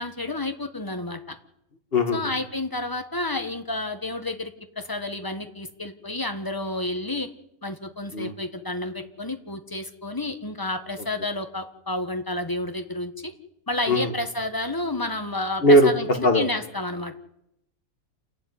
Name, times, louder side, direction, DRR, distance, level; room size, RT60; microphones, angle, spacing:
voice 1, 0.0-1.3 2.1-7.3 7.6-13.3 13.7-17.2, left 2 dB, 15° left, 7 dB, 1.5 m, -30 dB
voice 2, 15.6-16.5, equal, 40° left, 7 dB, 2.0 m, -19 dB
28.0 x 12.5 x 9.6 m, 0.84 s
omnidirectional pair, 1.6 m